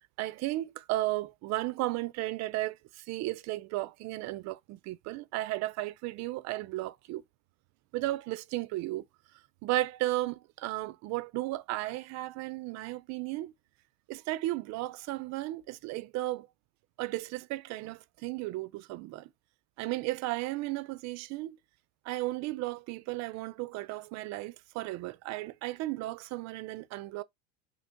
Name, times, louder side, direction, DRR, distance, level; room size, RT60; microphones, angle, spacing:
voice 1, 0.2-7.2 7.9-9.0 9.6-13.5 14.1-16.5 17.0-19.3 19.8-21.6 22.0-27.2, right 17 dB, 50° right, 0.5 m, -34 dB
4.8 x 2.0 x 3.7 m
supercardioid pair, 125°, 34 cm